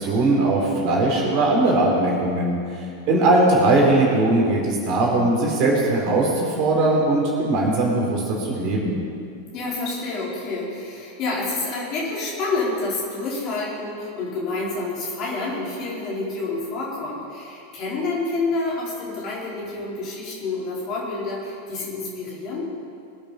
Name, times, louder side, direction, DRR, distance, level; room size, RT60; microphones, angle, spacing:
voice 1, 0.0-2.6 3.1-8.9, right 2 dB, 40° right, -2 dB, 4.1 m, -20 dB
voice 2, 9.5-22.7, left 3 dB, 40° left, -5 dB, 4.7 m, -28 dB
23.0 x 8.9 x 5.3 m, 2.5 s
figure-of-eight pair, 90°, 0 cm